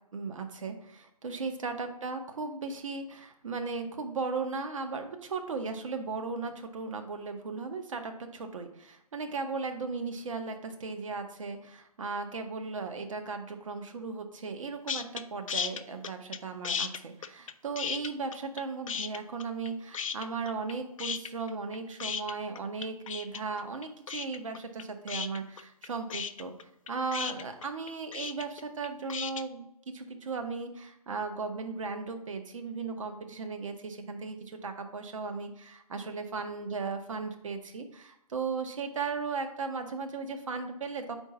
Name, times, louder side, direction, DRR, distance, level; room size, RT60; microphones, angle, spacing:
voice 1, 0.1-29.7 29.9-41.2, right 4 dB, 55° right, 6 dB, 0.8 m, -36 dB
sound 1, 14.9-15.2 15.5-16.4 16.6-18.6 18.9-19.7 19.9-20.7 21.0-29.4, left 7 dB, 60° left, 0.4 m, -35 dB
4.5 x 3.8 x 5.6 m, 0.79 s
figure-of-eight pair, 130°, 19 cm